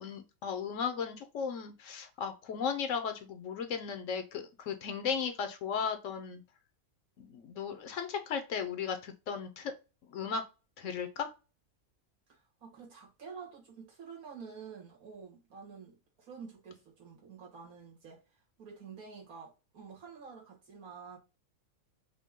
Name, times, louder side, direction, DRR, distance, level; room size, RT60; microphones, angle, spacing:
voice 1, 0.0-6.4 7.2-9.7 10.1-10.4 10.8-11.3, left 6 dB, 65° left, 1.0 m, -36 dB
voice 2, 12.3-18.2 18.6-21.2, right 6 dB, 85° right, 2.1 m, -49 dB
5.1 x 2.2 x 3.6 m
omnidirectional pair, 1.5 m